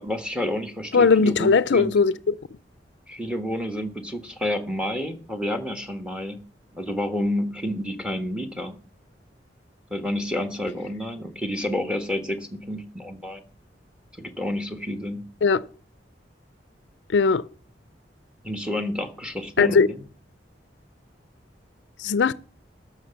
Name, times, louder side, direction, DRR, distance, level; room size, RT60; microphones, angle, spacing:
voice 1, 0.0-1.9 3.1-6.4 6.7-8.8 9.9-13.4 14.2-15.2 18.4-20.0, left 1 dB, 5° right, 1.3 m, -29 dB
voice 2, 0.9-2.3 15.4-15.6 17.1-17.4 19.6-19.9 22.0-22.3, left 5 dB, 75° left, 0.5 m, -19 dB
12.5 x 6.2 x 6.9 m
head